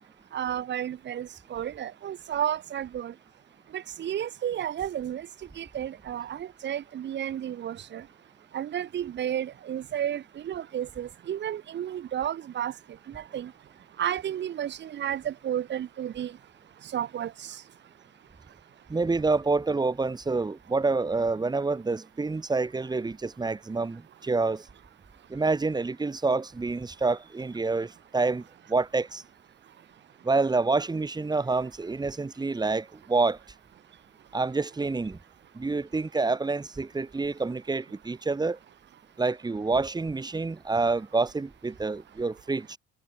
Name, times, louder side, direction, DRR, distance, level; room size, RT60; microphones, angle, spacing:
voice 1, 0.3-3.1 3.7-5.3 5.6-8.1 8.5-12.7 13.1-13.5 14.0-16.4 16.9-17.6, right 10 dB, 35° right, 1.2 m, -32 dB
voice 2, 18.9-24.6 25.3-28.4 28.7-29.2 30.2-33.4 34.3-35.2 35.5-38.6 39.2-42.8, right 3 dB, 15° right, 3.9 m, -27 dB
cardioid pair, 165°, 30 cm